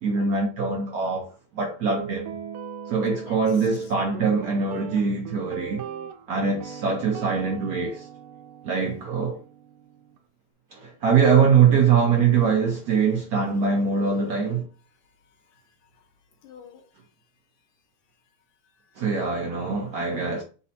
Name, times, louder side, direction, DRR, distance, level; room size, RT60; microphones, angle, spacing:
voice 1, 0.0-2.3 2.9-5.8 6.3-8.1 8.6-9.4 10.7-14.7 19.0-20.4, right 6 dB, 65° right, 0.9 m, -23 dB
Guitar, 2.0-10.2, right 8 dB, 90° right, 1.5 m, -39 dB
voice 2, 3.3-3.8 15.5-16.1 16.4-16.8 18.6-19.1 20.0-20.3, left 8 dB, 85° left, 1.6 m, -50 dB
4.2 x 2.8 x 4.0 m
omnidirectional pair, 2.3 m